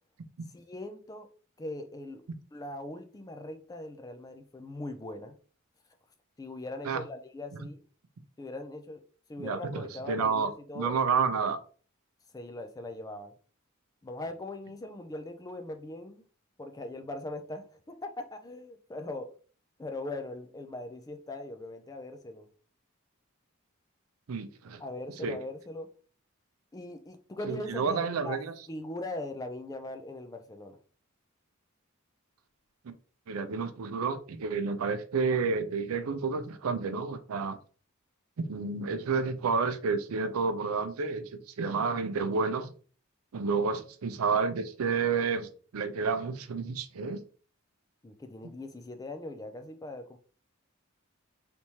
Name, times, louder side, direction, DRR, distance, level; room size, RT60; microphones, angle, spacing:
voice 1, 0.5-1.3 1.6-2.2 2.5-5.4 6.4-7.8 8.4-9.0 9.3-11.0 12.3-13.3 14.0-16.2 16.6-19.4 19.8-22.5 24.8-25.9 26.7-28.4 28.7-30.8 48.0-50.2, left 2 dB, 15° left, 0.4 m, -40 dB
voice 2, 9.4-11.6 24.3-24.8 25.2-25.4 27.5-28.5 33.3-37.6 38.4-42.7 43.3-47.2, right 5 dB, 85° right, 0.5 m, -30 dB
3.4 x 2.9 x 2.8 m
head